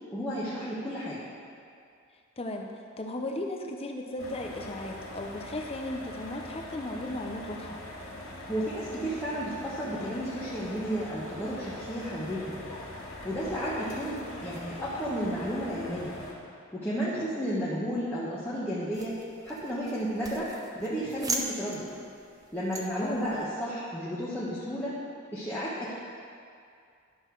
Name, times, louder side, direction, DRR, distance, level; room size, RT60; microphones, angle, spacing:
voice 1, 0.1-1.2 8.5-12.6 13.2-16.2 16.7-19.2 19.4-21.9 22.5-25.0 25.3-25.9, equal, 10° left, -9 dB, 1.1 m, -32 dB
voice 2, 2.4-7.8 23.0-23.3, left 1 dB, 25° left, 2 dB, 0.7 m, -36 dB
sound 1, 4.2-16.3, left 1 dB, 75° left, 1.9 m, -42 dB
sound 2, 18.9-23.5, right 3 dB, 15° right, 0.6 m, -39 dB
11.0 x 6.5 x 4.6 m, 2.4 s
head